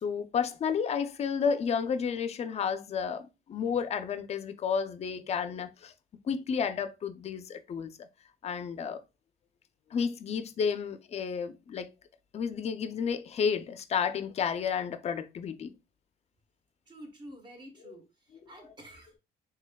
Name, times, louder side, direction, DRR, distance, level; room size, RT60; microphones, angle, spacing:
voice 1, 0.0-5.9 6.2-8.1 8.4-9.0 9.9-11.9 12.3-15.7 17.9-18.0 18.3-18.4, left 6 dB, 40° left, 0.4 m, -31 dB
voice 2, 16.9-19.2, right 1 dB, 25° right, 1.2 m, -49 dB
3.3 x 3.3 x 2.2 m
cardioid pair, 110°, 17 cm